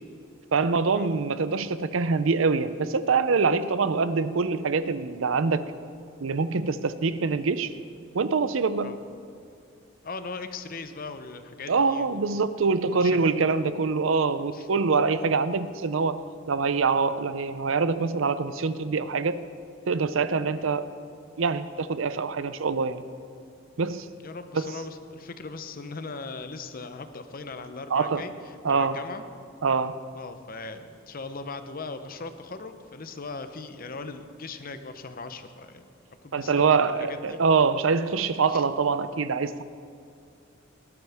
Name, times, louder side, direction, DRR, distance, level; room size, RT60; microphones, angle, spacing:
voice 1, 0.5-5.6 6.2-7.7 8.1-8.9 11.7-16.2 16.5-19.4 19.9-20.9 21.4-23.0 23.8-24.1 24.5-24.7 27.9-28.3 28.6-29.0 29.6-30.0 36.3-39.6, right 4 dB, 90° right, 13 dB, 0.6 m, -24 dB
voice 2, 10.0-12.3 12.9-13.3 14.5-14.7 20.6-20.7 24.2-28.3 28.7-29.2 30.1-35.9 36.2-36.6 37.0-37.4 38.5-38.6, left 4 dB, 45° left, 9 dB, 0.8 m, -39 dB
19.0 x 11.5 x 3.6 m, 2.4 s
head